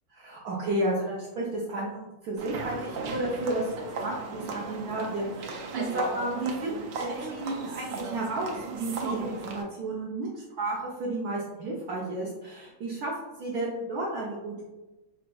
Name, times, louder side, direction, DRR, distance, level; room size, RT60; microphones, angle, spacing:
voice 1, 0.1-14.6, right 2 dB, 70° right, -3 dB, 1.1 m, -32 dB
sound 1, 2.4-9.6, right 3 dB, 85° right, 1.2 m, -36 dB
5.1 x 2.7 x 2.2 m, 1.1 s
omnidirectional pair, 1.9 m